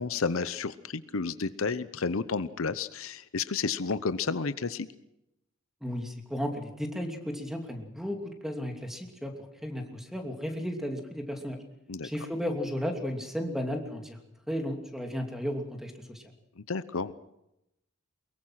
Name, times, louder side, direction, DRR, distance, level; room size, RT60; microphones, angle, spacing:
voice 1, 0.0-4.9 11.9-12.1 16.6-17.1, left 4 dB, 75° left, 14 dB, 0.8 m, -31 dB
voice 2, 5.8-9.3 9.6-11.6 12.0-14.2 14.5-16.2, equal, ahead, 4 dB, 2.7 m, -34 dB
23.5 x 22.0 x 5.9 m, 0.87 s
head